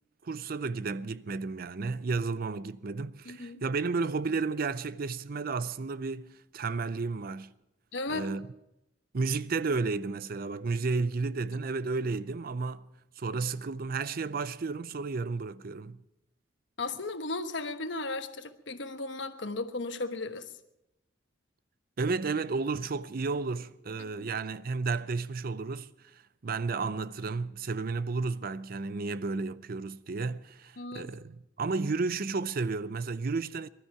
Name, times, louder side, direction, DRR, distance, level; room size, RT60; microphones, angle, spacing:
voice 1, 0.2-7.5 8.1-8.5 9.1-12.8 13.2-16.0 22.0-33.7, right 4 dB, 50° right, 0.5 m, -32 dB
voice 2, 3.2-3.6 7.9-8.3 16.8-20.4 24.0-24.3 30.8-31.1, left 3 dB, 65° left, 1.2 m, -36 dB
20.0 x 12.5 x 5.8 m
head